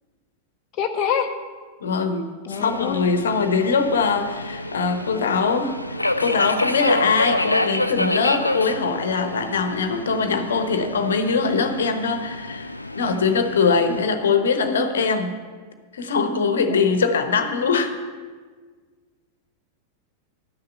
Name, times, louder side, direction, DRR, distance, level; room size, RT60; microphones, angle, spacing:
voice 1, 0.8-1.3 2.5-3.1, left 8 dB, 35° left, 3 dB, 0.7 m, -24 dB
voice 2, 1.8-12.7 12.9-15.3 15.9-17.9, left 5 dB, 65° left, 8 dB, 1.0 m, -22 dB
Subway metro underground, 2.5-14.0, left 1 dB, 85° left, 0.5 m, -28 dB
12.0 x 6.7 x 6.6 m, 1.5 s
figure-of-eight pair, 90°, 0 cm